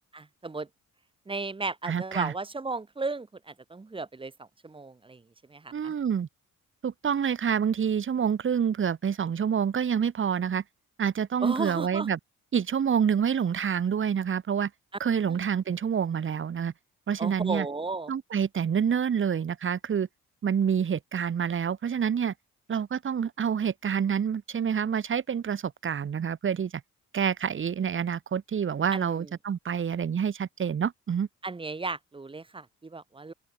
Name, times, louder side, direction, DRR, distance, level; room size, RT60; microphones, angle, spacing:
voice 1, 0.1-0.7 1.3-5.2 5.5-5.9 11.4-12.1 15.3-15.4 17.2-18.1 28.9-29.3 31.4-33.3, right 3 dB, 15° right, 0.9 m, -35 dB
voice 2, 1.8-2.3 5.7-6.3 6.8-10.6 11.0-12.2 12.5-14.7 15.0-16.7 17.1-17.7 18.1-20.1 20.4-22.3 22.7-26.7 27.1-31.3, right 7 dB, 40° right, 1.4 m, -27 dB
open air
cardioid pair, 90°, 30 cm